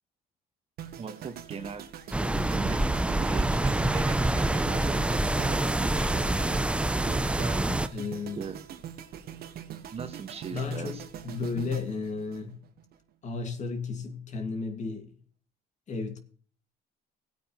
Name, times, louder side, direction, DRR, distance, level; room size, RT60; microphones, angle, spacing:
sound 1, 0.8-13.0 13.2-13.5, right 9 dB, 65° right, 1.5 m, -43 dB
voice 1, 1.0-1.9 2.5-6.6 7.0-7.9 8.3-8.6 9.9-11.0, right 6 dB, 35° right, 1.5 m, -40 dB
sound 2, 2.1-7.9, right 1 dB, 5° right, 0.5 m, -26 dB
voice 2, 7.9-8.4 10.5-12.6 13.2-15.1 15.9-16.2, left 4 dB, 45° left, 2.0 m, -33 dB
17.0 x 8.7 x 3.0 m
cardioid pair, 110°, 17 cm